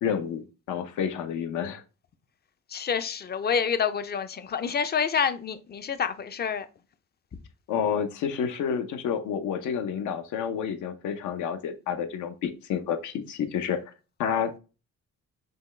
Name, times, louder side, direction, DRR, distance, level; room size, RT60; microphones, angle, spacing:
voice 1, 0.0-1.8 7.7-13.8 14.2-14.6, left 8 dB, 80° left, 0.7 m, -29 dB
voice 2, 2.7-6.7, left 7 dB, 35° left, 0.4 m, -28 dB
5.3 x 2.2 x 3.2 m
cardioid pair, 90°, 30 cm